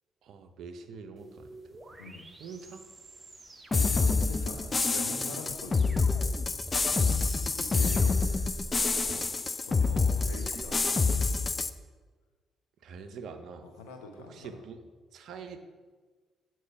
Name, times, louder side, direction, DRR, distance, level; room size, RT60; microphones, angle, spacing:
voice 1, 0.2-1.5 2.4-2.8 7.0-7.2 9.1-9.3 12.8-13.7 14.2-14.8 15.1-15.6, right 5 dB, 60° right, 8 dB, 0.5 m, -44 dB
sound 1, 1.2-10.9, right 3 dB, 30° right, 0.7 m, -48 dB
voice 2, 2.0-2.3 3.7-6.1 7.6-8.2 8.7-9.2 9.6-11.6 13.6-14.5, left 3 dB, 75° left, 3 dB, 0.7 m, -45 dB
sound 2, 3.7-11.7, left 4 dB, 30° left, 0.3 m, -27 dB
7.8 x 3.0 x 5.7 m, 1.4 s
figure-of-eight pair, 45°, 0 cm